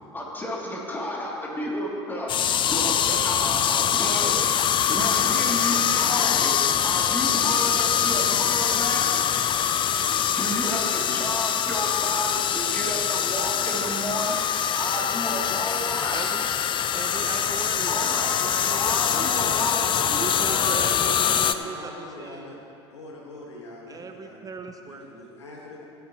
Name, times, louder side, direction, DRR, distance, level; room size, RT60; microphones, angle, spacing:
voice 1, 0.1-4.4 4.9-6.5 6.8-9.1 10.3-16.2 17.9-18.4 18.7-20.2, equal, 15° left, -4 dB, 2.9 m, -31 dB
sound 1, 2.3-21.5, left 9 dB, 35° left, 0.5 m, -24 dB
voice 2, 16.1-16.4 16.9-17.9 18.2-19.5 20.1-22.5 23.9-25.1, right 4 dB, 25° right, 6 dB, 0.7 m, -38 dB
voice 3, 20.2-22.6 22.9-24.4 24.8-25.9, left 1 dB, 80° left, -2 dB, 1.9 m, -41 dB
16.5 x 9.7 x 3.1 m, 2.8 s
figure-of-eight pair, 70°, 15 cm